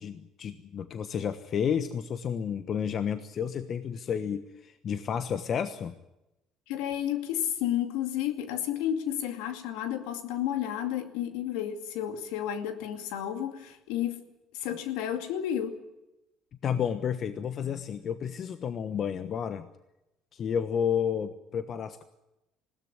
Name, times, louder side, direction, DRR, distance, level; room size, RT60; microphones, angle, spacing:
voice 1, 0.0-5.9 16.6-19.7 20.3-22.0, left 8 dB, 50° left, 1.2 m, -31 dB
voice 2, 6.7-14.2 14.5-15.8, left 10 dB, 75° left, 2.3 m, -31 dB
20.5 x 17.0 x 9.8 m
hypercardioid pair, 60°, 0 cm